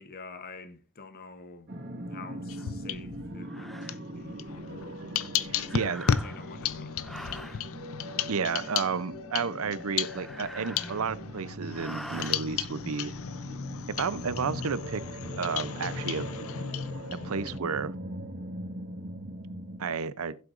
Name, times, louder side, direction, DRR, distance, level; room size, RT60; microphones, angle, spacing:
voice 1, 0.0-1.7 2.1-3.8 4.2-5.1 5.6-7.7, left 4 dB, 45° left, 0.9 m, -48 dB
sound 1, 1.7-19.9, right 1 dB, 50° right, 1.7 m, -41 dB
sound 2, 2.5-3.4 3.8-17.6, left 8 dB, 70° left, 0.5 m, -34 dB
sound 3, 2.6-2.7 3.4-4.0 5.6-6.5 7.0-7.6 9.8-11.3 11.7-12.4, equal, ahead, 0.4 m, -44 dB
voice 2, 5.7-6.0 8.3-13.2 14.0-15.0 15.4-16.3 17.1-17.9 19.8-20.4, right 5 dB, 75° right, 0.6 m, -32 dB
16.0 x 7.8 x 2.5 m
head